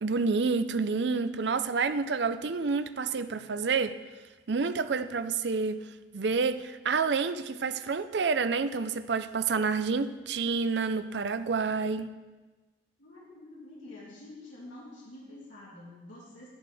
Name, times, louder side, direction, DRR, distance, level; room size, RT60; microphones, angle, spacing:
voice 1, 0.0-4.0 4.5-5.8 6.1-12.1, right 4 dB, 70° right, 11 dB, 0.5 m, -28 dB
voice 2, 13.0-16.5, left 2 dB, 90° left, -7 dB, 2.2 m, -48 dB
11.0 x 11.0 x 3.5 m, 1.2 s
head